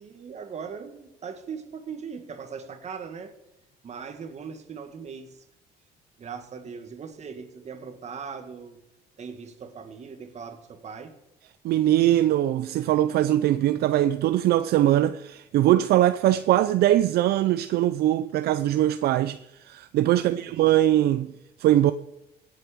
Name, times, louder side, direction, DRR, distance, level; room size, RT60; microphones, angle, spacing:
voice 1, 0.0-3.3 3.8-5.5 6.2-8.8 9.2-11.2 20.1-20.6, right 6 dB, 40° right, 1.9 m, -39 dB
voice 2, 11.6-21.3 21.6-21.9, right 13 dB, 70° right, 0.5 m, -21 dB
17.0 x 7.7 x 5.2 m
cardioid pair, 110°, 17 cm